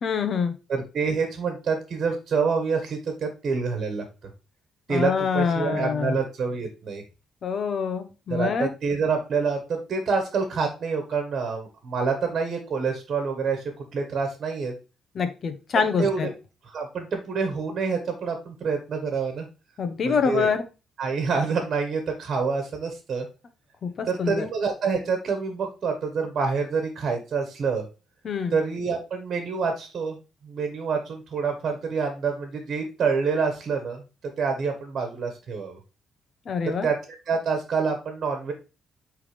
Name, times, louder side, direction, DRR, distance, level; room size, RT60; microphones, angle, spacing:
voice 1, 0.0-0.6 4.9-6.2 7.4-8.7 15.1-16.3 19.8-20.6 23.8-24.5 28.2-28.5 36.5-36.9, left 6 dB, 55° left, 9 dB, 1.1 m, -25 dB
voice 2, 0.7-4.1 4.9-7.0 8.3-13.6 13.9-14.7 16.0-16.2 16.7-19.5 20.0-20.5 21.0-23.3 24.1-27.8 28.5-30.2 30.4-34.0 34.4-35.8 36.6-37.0 37.3-38.5, right 5 dB, 55° right, 5 dB, 1.4 m, -27 dB
8.5 x 3.6 x 3.4 m, 0.31 s
cardioid pair, 90°, 0 cm